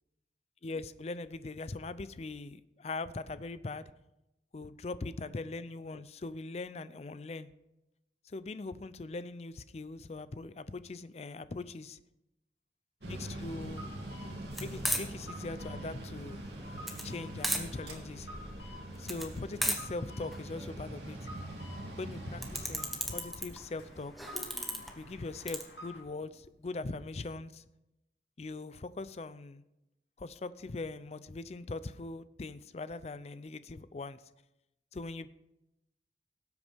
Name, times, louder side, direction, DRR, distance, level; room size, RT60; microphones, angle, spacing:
voice 1, 0.6-3.9 4.5-7.5 8.2-12.0 13.0-13.9 14.6-16.4 17.0-18.3 19.0-21.3 22.0-24.1 25.0-27.6 28.4-29.6 30.2-34.2 34.9-35.3, left 3 dB, 35° left, 15 dB, 0.4 m, -41 dB
sound 1, 13.0-26.0, left 1 dB, 80° left, 2.3 m, -51 dB
Mechanical fan, 13.0-26.4, right 1 dB, 75° right, 2.7 m, -44 dB
sound 2, 14.5-25.6, equal, ahead, 1.1 m, -38 dB
18.5 x 8.2 x 3.5 m, 0.92 s
head